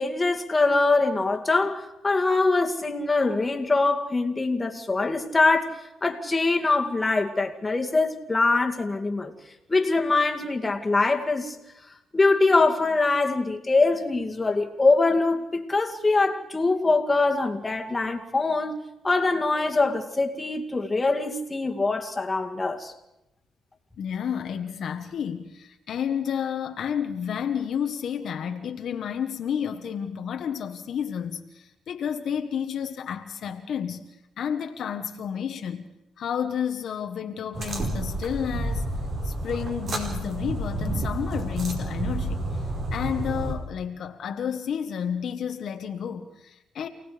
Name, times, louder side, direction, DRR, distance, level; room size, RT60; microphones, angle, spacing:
voice 1, 0.0-9.3 9.7-11.6 12.1-18.8 19.0-22.9, left 3 dB, 20° left, 2.3 m, -23 dB
voice 2, 24.0-34.1 34.4-35.9 36.2-38.8 39.2-42.7 42.9-46.9, left 8 dB, 65° left, 1.3 m, -31 dB
sound 1, 37.5-43.5, right 1 dB, 50° right, 5.2 m, -30 dB
28.5 x 18.0 x 5.1 m
cardioid pair, 90°, 0 cm